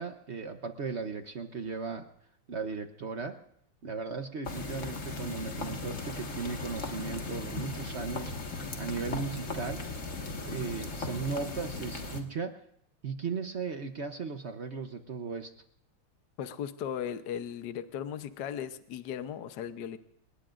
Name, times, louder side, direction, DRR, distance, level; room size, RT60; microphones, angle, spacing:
voice 1, 0.0-2.1 2.5-3.4 3.8-9.8 10.5-12.6 13.0-15.5, right 5 dB, 60° right, 7 dB, 0.7 m, -37 dB
sound 1, 4.4-12.2, left 2 dB, 35° left, 1.9 m, -37 dB
voice 2, 16.4-20.0, left 9 dB, 60° left, 10 dB, 1.3 m, -37 dB
30.0 x 18.5 x 2.5 m, 0.70 s
omnidirectional pair, 2.4 m